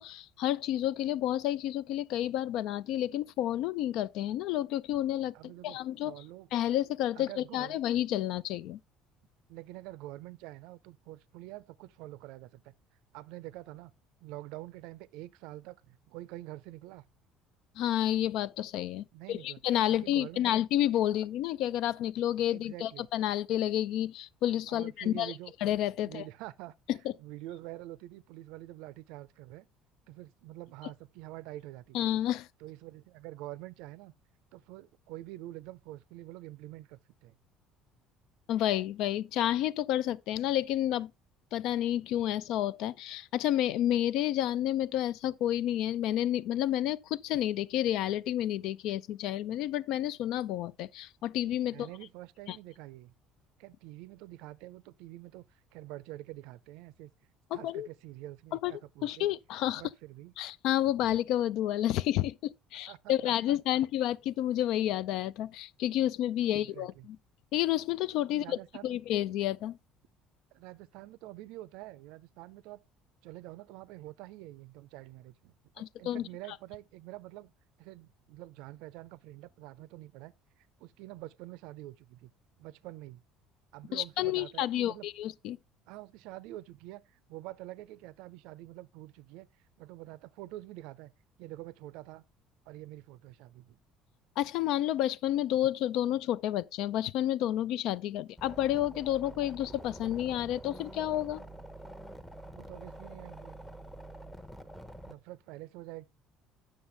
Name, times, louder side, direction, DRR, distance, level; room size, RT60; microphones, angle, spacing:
voice 1, 0.0-6.1 6.5-8.8 17.8-25.3 25.6-26.2 26.9-27.1 31.9-32.5 38.5-41.1 41.5-51.9 52.5-52.6 57.5-57.9 58.6-58.7 59.0-59.8 60.4-67.2 67.5-69.8 75.8-76.3 83.9-85.6 94.4-101.4, left 12 dB, 70° left, 0.4 m, -30 dB
voice 2, 5.3-5.8 6.0-6.5 7.2-7.8 9.5-12.7 13.1-13.9 14.2-17.0 19.1-19.6 20.0-20.6 22.5-23.1 24.7-25.5 26.0-26.7 27.2-29.7 30.1-32.0 32.6-34.1 34.5-37.4 51.7-53.1 53.6-55.5 55.7-57.1 57.5-59.3 59.8-60.3 62.9-63.8 66.5-67.1 68.3-69.0 70.5-72.8 73.2-77.5 77.8-82.3 82.6-83.2 83.7-85.1 85.9-89.5 89.8-91.1 91.4-92.2 92.7-93.8 102.6-103.6 105.1-106.1, right 16 dB, 80° right, 0.4 m, -46 dB
sound 1, 98.4-105.1, right 1 dB, 5° left, 0.8 m, -47 dB
9.6 x 6.3 x 3.3 m
cardioid pair, 130°, 0 cm